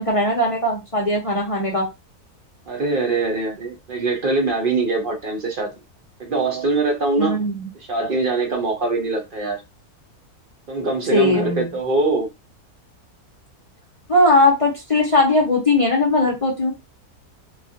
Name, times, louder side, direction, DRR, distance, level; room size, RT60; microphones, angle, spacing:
voice 1, 0.0-1.9 7.2-7.7 11.1-11.7 14.1-16.7, left 2 dB, 40° left, 0.5 m, -19 dB
voice 2, 2.7-5.7 6.2-7.4 7.9-9.6 10.7-12.3, right 3 dB, 50° right, 0.7 m, -22 dB
3.1 x 2.3 x 2.7 m
omnidirectional pair, 1.7 m